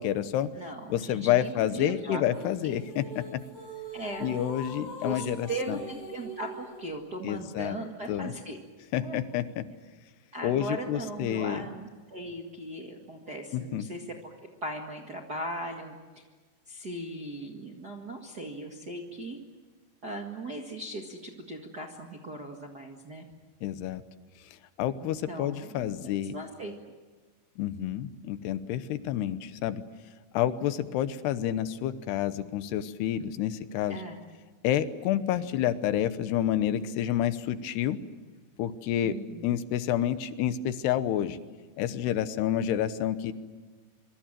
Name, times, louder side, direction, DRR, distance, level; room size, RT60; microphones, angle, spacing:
voice 1, 0.0-0.5 0.9-3.4 4.2-5.8 7.2-7.8 8.1-8.3 8.9-9.6 10.4-11.6 13.5-13.9 23.6-24.0 24.8-26.3 27.6-29.8 30.3-34.0 34.6-38.0 38.6-41.4 41.8-43.3, left 11 dB, 80° left, 12 dB, 3.1 m, -29 dB
voice 2, 0.5-2.2 3.9-4.3 5.0-8.6 9.0-9.2 10.3-14.3 14.6-16.2 16.7-19.4 20.0-23.2 25.0-26.7 33.9-34.2 39.0-39.6, right 1 dB, 40° right, 1 dB, 1.4 m, -38 dB
sound 1, 2.3-6.9, right 1 dB, 50° left, 8.8 m, -43 dB
26.5 x 24.0 x 7.6 m, 1.4 s
omnidirectional pair, 4.7 m